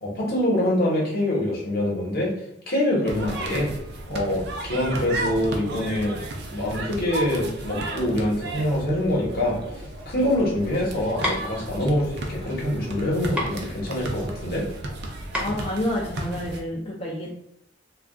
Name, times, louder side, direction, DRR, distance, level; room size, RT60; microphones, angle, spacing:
voice 1, 0.0-2.3 2.7-3.7 4.1-6.2 6.5-9.6 10.1-14.6, left 1 dB, 50° left, -3 dB, 0.9 m, -25 dB
sound 1, 3.1-16.6, right 2 dB, 60° right, 0.5 m, -34 dB
sound 2, 11.2-16.7, equal, 5° right, 0.7 m, -33 dB
voice 2, 15.4-17.3, left 1 dB, 30° left, -4 dB, 0.4 m, -29 dB
2.3 x 2.2 x 3.6 m, 0.78 s
head